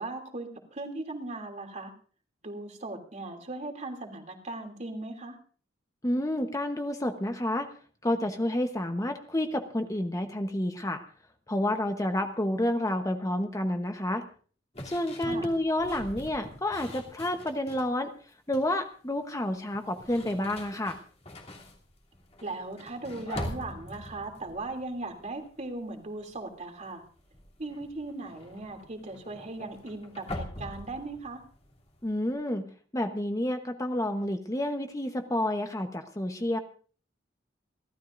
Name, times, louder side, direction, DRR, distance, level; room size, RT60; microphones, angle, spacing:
voice 1, 0.0-1.9 2.4-5.4 15.2-15.5 22.4-27.0 27.6-31.4, right 2 dB, 40° right, 4 dB, 2.8 m, -38 dB
voice 2, 6.0-7.7 8.0-11.0 11.5-14.2 14.8-18.1 18.5-21.0 32.0-32.6 32.9-36.6, left 1 dB, 20° left, 6 dB, 1.0 m, -29 dB
sound 1, 14.7-17.9 18.3-18.8 19.7-25.9 26.2-26.6 26.8-32.3, left 1 dB, 35° left, 3.0 m, -43 dB
29.5 x 13.0 x 2.6 m, 0.41 s
head